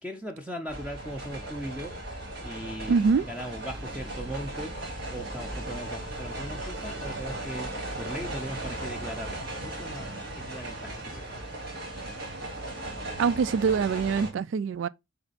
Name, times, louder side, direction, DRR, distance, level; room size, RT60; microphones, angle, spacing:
voice 1, 0.0-2.0 2.4-4.7 5.1-11.5, equal, 5° right, 0.6 m, -39 dB
sound 1, 0.7-14.3, right 1 dB, 50° right, 2.8 m, -37 dB
voice 2, 2.9-3.3 13.2-14.9, right 5 dB, 70° right, 0.3 m, -24 dB
6.6 x 4.0 x 4.1 m
head